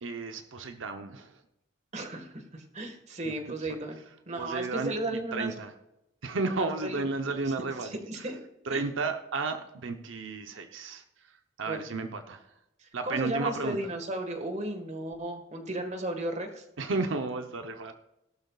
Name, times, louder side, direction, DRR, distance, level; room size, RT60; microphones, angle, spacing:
voice 1, 0.0-1.3 3.6-3.7 4.4-4.9 5.3-5.7 6.2-8.3 8.7-11.0 11.6-12.4 12.9-13.8 16.8-17.9, right 3 dB, 90° right, 6 dB, 0.8 m, -33 dB
voice 2, 1.9-4.0 4.3-5.5 6.5-7.5 7.8-8.4 8.7-8.8 11.7-11.8 13.0-16.6, right 1 dB, 40° right, 5 dB, 1.6 m, -35 dB
17.5 x 12.0 x 2.4 m, 0.89 s
head